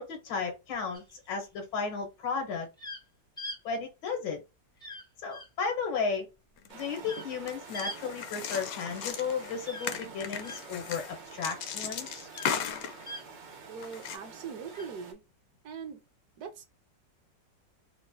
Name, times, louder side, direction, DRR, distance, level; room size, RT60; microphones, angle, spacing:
voice 1, 0.0-2.7 3.6-4.4 5.2-6.2 6.7-12.3, left 5 dB, 85° left, 1.7 m, -34 dB
sound 1, 0.9-1.4 2.8-3.0 3.4-3.6 4.8-5.0 5.3-5.5 7.0-7.3 7.7-8.0 9.6-10.6 12.3-12.6 13.0-13.2 14.7-14.9, left 1 dB, 5° left, 0.3 m, -42 dB
sound 2, 6.6-7.0 7.5-13.1 13.8-14.2, left 8 dB, 70° left, 0.9 m, -37 dB
sound 3, 6.7-15.1, right 5 dB, 90° right, 1.7 m, -48 dB
voice 2, 13.7-15.2 15.6-16.0 16.4-16.6, right 6 dB, 70° right, 1.1 m, -41 dB
4.1 x 2.1 x 2.6 m
omnidirectional pair, 1.9 m